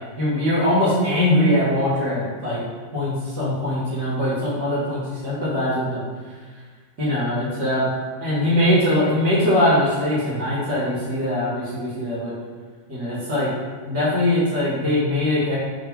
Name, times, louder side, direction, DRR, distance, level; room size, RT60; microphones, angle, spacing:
voice 1, 0.2-2.6 2.9-6.0 7.0-7.9 8.2-12.3 12.9-13.5 13.8-15.6, left 1 dB, 45° right, -7 dB, 1.3 m, -21 dB
3.0 x 2.2 x 3.1 m, 1.5 s
figure-of-eight pair, 90°, 0 cm